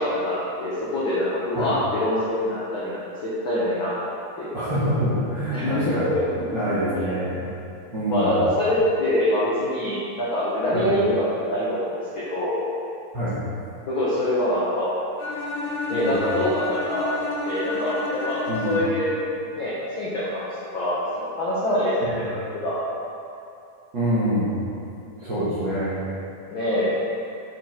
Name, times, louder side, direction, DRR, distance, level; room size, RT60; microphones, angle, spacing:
voice 1, 0.0-3.9 4.4-4.5 5.5-7.1 8.1-12.5 13.9-14.9 15.9-17.0 17.4-19.2 19.5-20.5 20.7-22.8 26.5-26.9, left 1 dB, 85° left, -9 dB, 1.1 m, -25 dB
voice 2, 4.5-6.1 6.5-7.4 7.9-8.4 10.7-10.8 13.1-13.4 15.9-16.2 18.5-18.8 22.0-22.2 23.9-24.6 25.2-26.0, equal, 50° right, -11 dB, 1.5 m, -25 dB
Bowed string instrument, 15.2-19.2, left 2 dB, 65° left, 2.5 m, -30 dB
7.3 x 5.6 x 4.4 m, 2.6 s
omnidirectional pair, 4.1 m